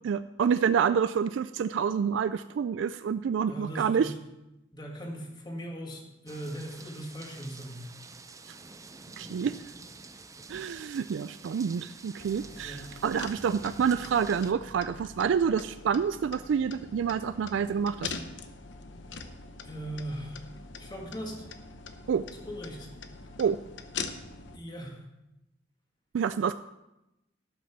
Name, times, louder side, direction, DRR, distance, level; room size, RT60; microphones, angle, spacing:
voice 1, 0.0-4.1 8.5-8.6 9.2-9.6 10.5-18.1 22.1-22.2 23.4-23.6 26.1-26.5, right 7 dB, 75° right, 12 dB, 0.3 m, -28 dB
voice 2, 3.5-4.1 4.7-7.8 12.6-13.0 19.1-19.2 19.6-20.4 20.8-21.5 22.3-22.9 24.5-25.0, right 1 dB, 25° left, 0 dB, 1.9 m, -39 dB
sound 1, 6.3-14.5, right 4 dB, 15° right, 0.5 m, -48 dB
sound 2, 12.2-24.6, left 4 dB, 70° left, 0.8 m, -43 dB
12.0 x 6.1 x 5.8 m, 0.92 s
head